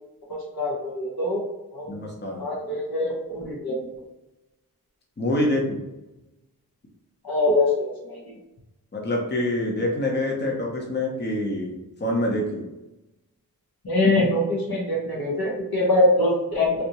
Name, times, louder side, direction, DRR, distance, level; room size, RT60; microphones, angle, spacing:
voice 1, 0.3-1.4 1.7-1.9 2.4-4.0 7.2-8.2 13.8-16.8, left 1 dB, 80° left, -5 dB, 1.5 m, -23 dB
voice 2, 1.9-2.5 5.2-5.8 8.9-12.6, left 1 dB, 30° left, -1 dB, 0.8 m, -26 dB
3.3 x 2.8 x 2.9 m, 0.99 s
wide cardioid pair, 75°, 36 cm